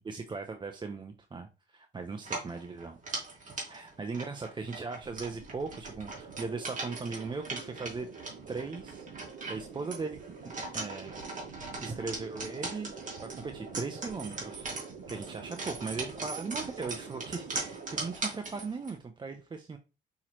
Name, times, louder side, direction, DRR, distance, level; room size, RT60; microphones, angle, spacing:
voice 1, 0.1-3.0 3.7-8.1 8.5-9.1 9.5-10.2 10.7-11.2 11.8-12.9 13.2-14.7 15.1-19.8, right 4 dB, 25° right, 5 dB, 0.5 m, -38 dB
sound 1, 2.2-19.0, right 3 dB, 40° right, 1.9 m, -40 dB
sound 2, 5.0-18.2, right 5 dB, 80° right, 0.9 m, -47 dB
5.5 x 3.0 x 2.9 m, 0.31 s
cardioid pair, 90°, 20 cm